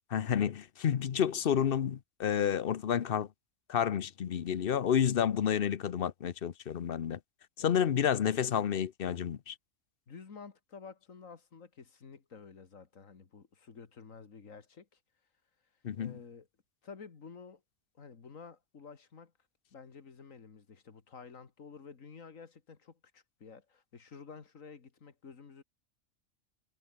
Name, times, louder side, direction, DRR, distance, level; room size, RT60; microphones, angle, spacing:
voice 1, 0.1-3.3 3.7-7.2 7.6-9.5 15.8-16.2, left 8 dB, 50° left, 0.9 m, -30 dB
voice 2, 10.1-15.0 16.0-16.5 16.8-17.6 17.9-19.3 19.7-25.6, left 5 dB, 90° left, 2.3 m, -51 dB
omnidirectional pair, 1.3 m